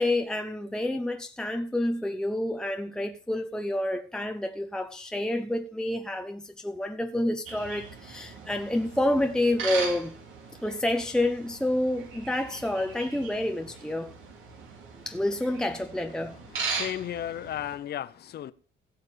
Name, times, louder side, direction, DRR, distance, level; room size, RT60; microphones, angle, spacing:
voice 1, 0.0-10.1 10.6-14.1 15.1-16.4, left 1 dB, 5° left, 0.8 m, -28 dB
sound 1, 7.5-17.8, right 5 dB, 85° right, 3.0 m, -39 dB
voice 2, 16.5-18.5, left 11 dB, 55° left, 0.6 m, -34 dB
16.5 x 6.5 x 5.1 m
cardioid pair, 90°, 20 cm